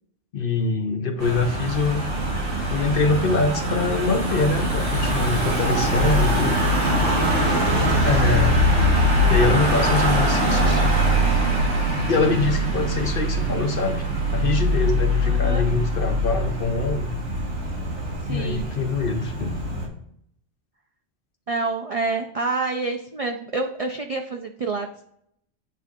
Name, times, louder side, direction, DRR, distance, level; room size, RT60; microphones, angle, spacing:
voice 1, 0.3-2.1 2.7-6.6 8.0-8.7 9.3-10.8 12.1-14.0 14.3-17.1 18.3-19.5, left 3 dB, 55° left, 6 dB, 0.8 m, -24 dB
Car passing by / Engine, 1.2-19.9, equal, 75° right, 2.1 m, -22 dB
voice 2, 15.2-15.6 18.2-18.7 21.5-25.0, right 3 dB, 50° right, 4 dB, 0.4 m, -28 dB
8.1 x 3.6 x 3.6 m, 0.70 s
omnidirectional pair, 1.2 m